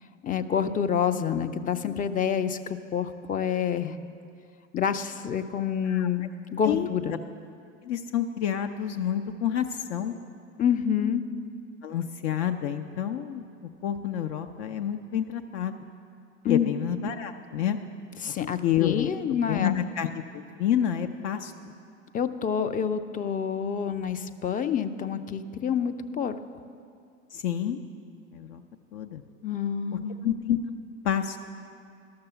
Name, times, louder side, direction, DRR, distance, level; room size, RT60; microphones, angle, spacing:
voice 1, 0.2-2.6 2.9-4.0 4.7-7.2 10.6-11.2 16.4-16.7 18.2-19.8 22.1-26.3 29.4-30.2, left 8 dB, 20° left, 10 dB, 0.4 m, -27 dB
voice 2, 7.8-10.1 11.8-13.4 13.8-15.8 16.4-17.8 18.6-21.5 27.3-27.8 28.3-28.6 28.9-29.2 30.2-30.6 31.0-31.4, left 10 dB, 65° left, 7 dB, 0.6 m, -28 dB
12.0 x 6.7 x 6.9 m, 2.3 s
hypercardioid pair, 85°, 38 cm